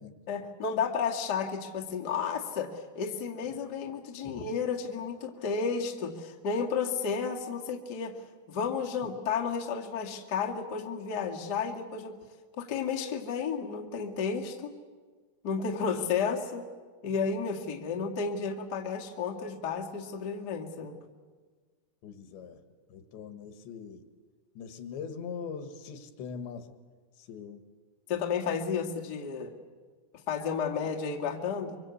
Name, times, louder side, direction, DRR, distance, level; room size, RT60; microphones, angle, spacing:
voice 1, 0.3-12.1 12.6-14.7 15.4-16.6 17.0-20.9 28.1-29.5 30.3-31.8, left 6 dB, 55° left, 0 dB, 1.1 m, -32 dB
voice 2, 22.0-22.6 22.9-24.0 24.6-26.7 27.2-27.6, left 6 dB, 70° left, 8 dB, 3.4 m, -42 dB
25.0 x 24.5 x 8.3 m, 1.5 s
omnidirectional pair, 5.6 m